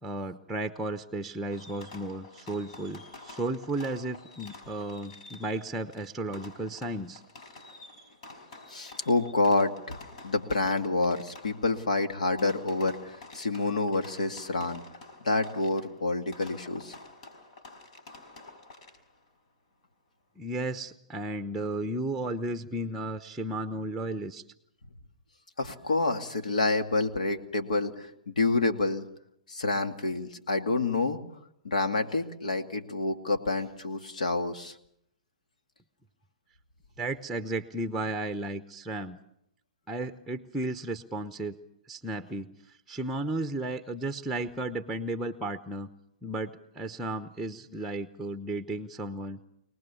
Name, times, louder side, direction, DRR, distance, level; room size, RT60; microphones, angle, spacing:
voice 1, 0.0-7.2 20.4-24.4 37.0-39.2 39.9-41.6 41.9-45.9 46.2-49.5, right 1 dB, 5° right, 9 dB, 0.9 m, -34 dB
Fireworks, 1.5-19.3, left 3 dB, 65° left, 5.0 m, -49 dB
voice 2, 8.7-10.0 10.2-14.8 15.2-16.9 25.6-29.1 29.5-31.2 31.6-34.7, left 3 dB, 90° left, 6 dB, 2.3 m, -28 dB
26.0 x 19.0 x 7.1 m, 0.74 s
hypercardioid pair, 130°, 4 cm